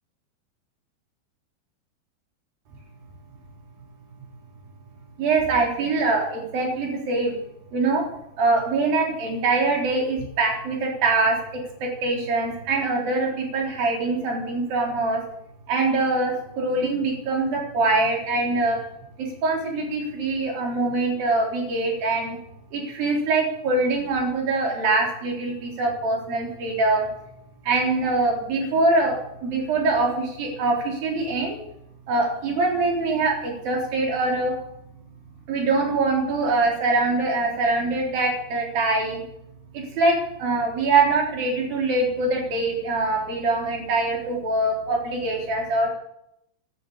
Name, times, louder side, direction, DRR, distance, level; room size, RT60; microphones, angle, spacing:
voice 1, 5.2-7.4 7.7-8.1 8.4-15.2 15.7-18.8 19.2-22.4 22.7-27.1 27.6-31.6 32.1-34.6 35.5-39.2 39.7-45.9, right 3 dB, 50° right, 0 dB, 5.4 m, -23 dB
12.5 x 12.5 x 8.5 m, 0.80 s
omnidirectional pair, 5.3 m